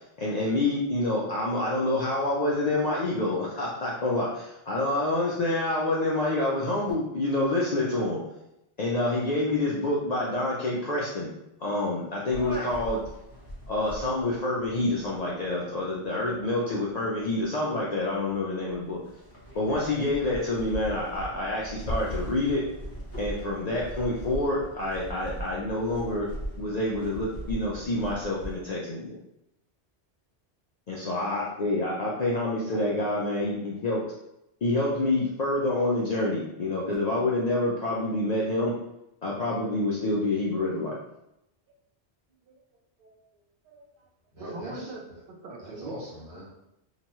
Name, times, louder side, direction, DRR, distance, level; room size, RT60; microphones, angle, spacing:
voice 1, 0.2-8.2 8.8-11.3 11.6-13.0 13.7-19.0 19.5-22.6 23.2-26.3 26.6-29.2 30.9-34.0 34.6-38.7 39.2-41.0, left 2 dB, 60° left, -5 dB, 0.4 m, -27 dB
sound 1, 12.3-28.6, equal, 15° left, 0.7 m, -40 dB
voice 2, 43.0-43.9 44.4-46.0, right 3 dB, 60° right, 1 dB, 0.7 m, -42 dB
voice 3, 44.3-45.2 45.6-46.5, equal, 80° right, -6 dB, 1.5 m, -42 dB
2.8 x 2.2 x 2.9 m, 0.85 s
omnidirectional pair, 1.2 m